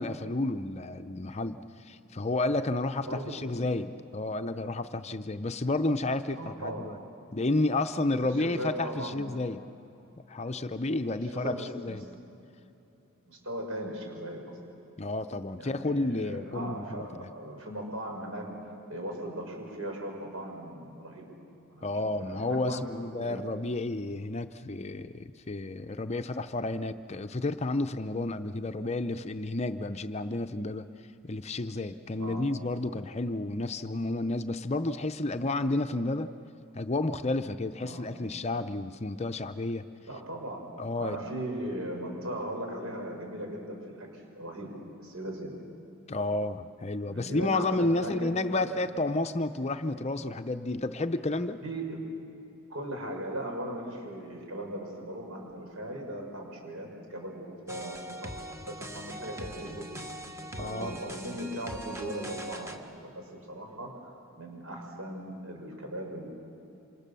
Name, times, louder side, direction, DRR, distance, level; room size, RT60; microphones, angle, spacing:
voice 1, 0.0-7.0 7.3-9.6 10.3-12.0 15.0-17.1 21.8-30.9 31.2-36.3 36.7-39.8 40.8-41.2 46.1-51.6 60.6-61.0, left 2 dB, 30° left, 9 dB, 0.6 m, -31 dB
voice 2, 6.3-6.9 8.2-9.4 11.3-12.0 13.3-14.6 15.6-21.2 21.7-23.4 32.2-32.4 37.8-38.1 40.1-40.7 41.0-44.1 44.3-44.7 45.0-45.6 47.0-48.7 51.6-52.0 52.7-58.4 58.6-59.8 60.6-63.9 64.3-66.3, right 1 dB, 70° right, 1 dB, 6.0 m, -38 dB
sound 1, 57.7-62.8, right 1 dB, 15° right, 1.3 m, -41 dB
28.0 x 26.5 x 6.9 m, 2.9 s
head